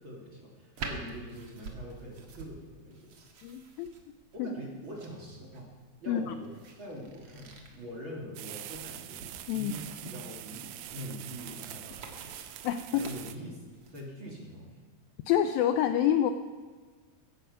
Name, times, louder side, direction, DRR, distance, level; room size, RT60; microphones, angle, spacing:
voice 1, 0.0-3.3 4.3-5.7 6.0-12.3 12.9-13.6 13.9-14.8, equal, 35° right, -2 dB, 2.5 m, -44 dB
sound 1, 0.8-14.0, right 4 dB, 50° right, 1.7 m, -48 dB
voice 2, 3.4-3.9 4.4-4.5 6.1-6.2 9.5-9.7 12.6-13.0 15.3-16.3, left 10 dB, 85° left, 9 dB, 2.1 m, -27 dB
sound 2, 8.4-13.4, right 13 dB, 85° right, 2.7 m, -44 dB
15.0 x 14.5 x 5.5 m, 1.4 s
omnidirectional pair, 4.7 m